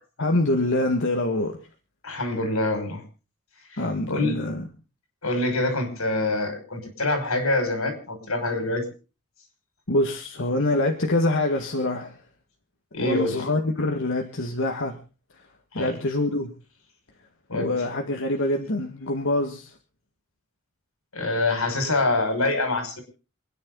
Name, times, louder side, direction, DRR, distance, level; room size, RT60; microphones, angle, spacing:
voice 1, 0.2-1.6 3.8-4.7 9.9-12.2 13.0-15.0 15.7-16.5 17.5-19.7, left 1 dB, 65° left, 3 dB, 2.0 m, -25 dB
voice 2, 2.0-3.0 3.7-3.8 4.1-4.4 5.2-8.8 12.9-13.4 15.7-15.9 17.5-17.7 21.1-23.0, left 2 dB, 90° left, 6 dB, 6.0 m, -25 dB
28.0 x 10.5 x 4.0 m, 0.34 s
head